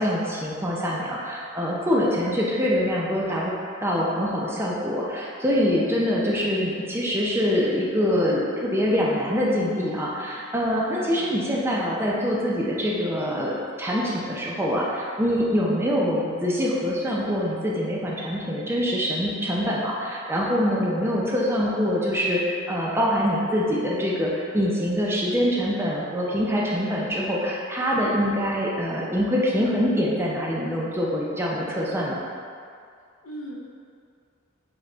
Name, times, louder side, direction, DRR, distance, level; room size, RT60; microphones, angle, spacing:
voice 1, 0.0-3.5 3.8-32.2, equal, 10° right, -5 dB, 0.5 m, -24 dB
voice 2, 10.9-11.3 33.2-33.6, equal, 80° left, -2 dB, 0.7 m, -39 dB
5.2 x 2.3 x 3.8 m, 2.3 s
head